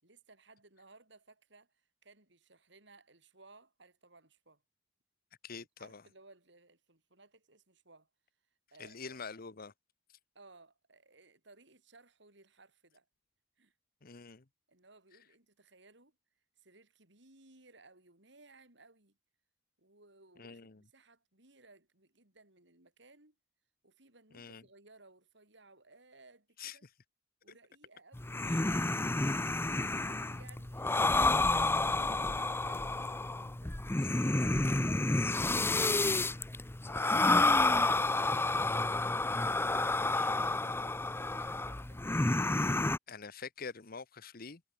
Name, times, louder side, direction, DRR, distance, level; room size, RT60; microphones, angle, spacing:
voice 1, 0.0-4.6 5.5-8.1 8.7-9.2 10.3-13.1 13.6-13.8 14.7-16.2 16.6-19.2 19.8-23.3 23.8-26.8 27.4-29.5 29.7-33.0 33.6-38.9 40.1-42.1, right 3 dB, 65° right, 6.3 m, -61 dB
voice 2, 5.4-6.0 8.8-9.7 14.0-14.4 20.4-20.8 24.3-24.6 26.6-26.8 40.1-40.5 43.1-44.6, left 5 dB, 50° left, 1.1 m, -46 dB
sound 1, 28.1-43.0, left 2 dB, 10° left, 0.6 m, -30 dB
head